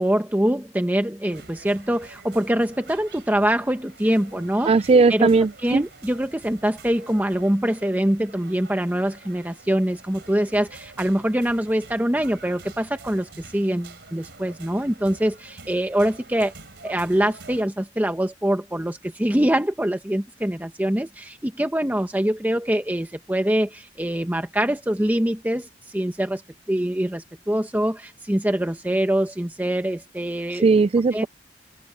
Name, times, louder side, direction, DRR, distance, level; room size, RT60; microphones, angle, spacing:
voice 1, 0.0-4.7 5.1-5.3 5.6-16.5 16.8-25.7 25.9-26.4 26.7-30.7 31.1-31.3, right 1 dB, 10° right, 1.0 m, -24 dB
sound 1, 1.3-17.6, right 3 dB, 75° right, 3.6 m, -47 dB
voice 2, 4.7-5.8 30.5-31.3, right 4 dB, 35° right, 0.3 m, -18 dB
head